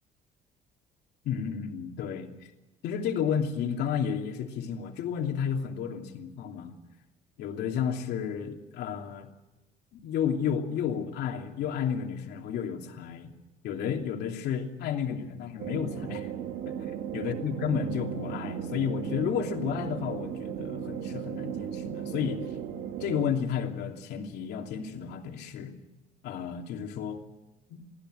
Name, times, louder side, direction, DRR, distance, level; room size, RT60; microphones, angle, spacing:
voice 1, 1.2-2.5 2.8-6.7 7.4-9.3 9.9-13.3 13.6-16.3 17.1-22.5 23.0-25.7 26.2-27.2 27.7-27.8, left 8 dB, 80° left, 3 dB, 2.9 m, -32 dB
sound 1, 15.6-23.3, right 9 dB, 80° right, 1.7 m, -36 dB
24.0 x 15.5 x 8.0 m, 1.0 s
cardioid pair, 110°, 17 cm